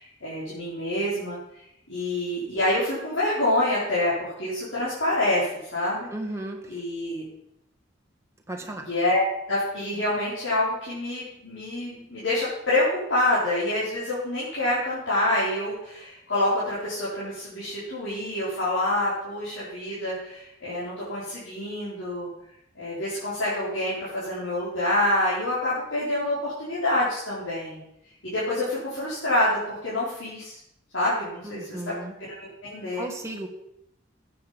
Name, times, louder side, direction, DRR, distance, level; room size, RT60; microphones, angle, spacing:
voice 1, 0.0-6.1 6.7-7.2 8.8-9.2 9.5-22.3 22.7-27.8 28.2-30.6 30.9-31.9 32.2-33.0, left 1 dB, 85° left, -9 dB, 4.9 m, -27 dB
voice 2, 6.1-6.6 8.5-8.9 31.4-32.1 33.0-33.5, right 1 dB, 15° right, 1 dB, 1.7 m, -34 dB
14.0 x 9.1 x 5.3 m, 0.81 s
head